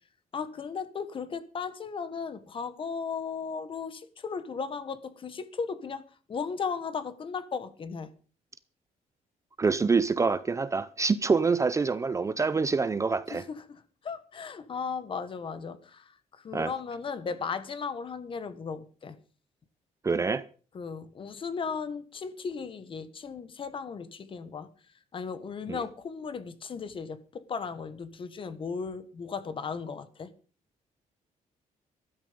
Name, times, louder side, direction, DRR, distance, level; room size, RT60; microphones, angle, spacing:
voice 1, 0.3-6.0 6.3-8.1 13.3-16.0 16.4-19.2 20.7-24.7 25.1-30.3, left 5 dB, 40° left, 1.4 m, -36 dB
voice 2, 9.6-13.5 16.5-16.7 20.0-20.4 25.7-25.8, right 4 dB, 20° right, 0.6 m, -26 dB
14.0 x 13.0 x 5.2 m
cardioid pair, 155°, 14 cm